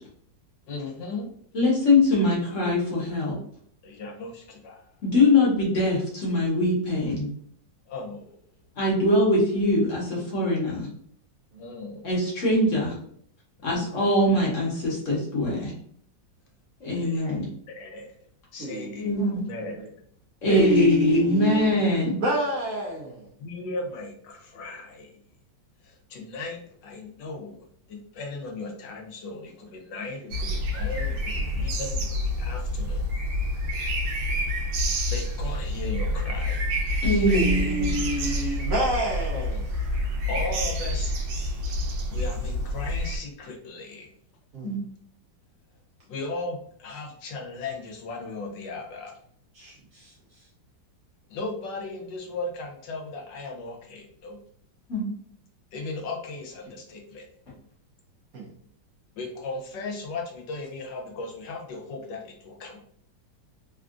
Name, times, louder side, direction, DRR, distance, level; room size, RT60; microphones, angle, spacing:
voice 1, 0.7-1.3 3.8-4.8 7.9-8.3 11.6-12.1 13.7-14.0 17.0-17.2 17.7-18.2 18.5-19.9 23.4-25.1 25.8-33.1 35.1-36.6 40.3-41.1 42.1-44.1 46.1-49.1 51.3-54.4 55.7-57.3 59.2-62.8, left 3 dB, 75° left, 1 dB, 1.3 m, -37 dB
voice 2, 1.5-3.3 5.0-7.3 8.8-10.9 12.0-13.0 13.6-15.7 16.8-17.5 19.0-19.4 20.4-22.2 37.0-37.9 44.6-44.8 54.9-55.1, left 1 dB, 50° left, -5 dB, 1.1 m, -22 dB
voice 3, 18.6-19.2 19.6-19.9 20.5-21.7 22.2-23.3 37.3-39.6 44.5-44.7 49.5-50.1 58.3-58.4, right 1 dB, 65° right, -4 dB, 0.9 m, -28 dB
sound 1, 30.3-43.2, left 1 dB, 85° right, 1.4 m, -28 dB
3.5 x 2.3 x 2.4 m, 0.63 s
omnidirectional pair, 2.0 m